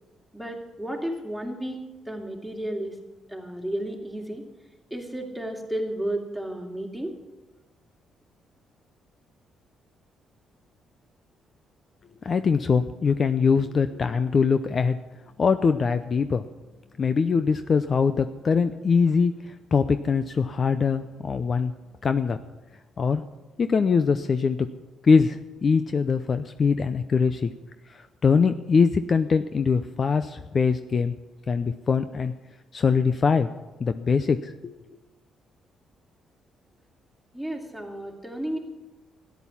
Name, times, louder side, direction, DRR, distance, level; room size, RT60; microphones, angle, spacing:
voice 1, 0.3-3.0 3.3-4.5 4.9-7.2 37.3-38.6, right 1 dB, ahead, 1 dB, 2.8 m, -32 dB
voice 2, 12.2-15.0 15.4-16.4 17.0-21.7 22.0-22.4 23.0-23.2 23.6-24.6 25.0-27.5 28.2-31.1 31.5-32.3 32.7-33.5 33.8-34.7, left 5 dB, 45° left, 10 dB, 0.6 m, -22 dB
13.5 x 10.5 x 7.2 m, 1.1 s
cardioid pair, 90°, 0 cm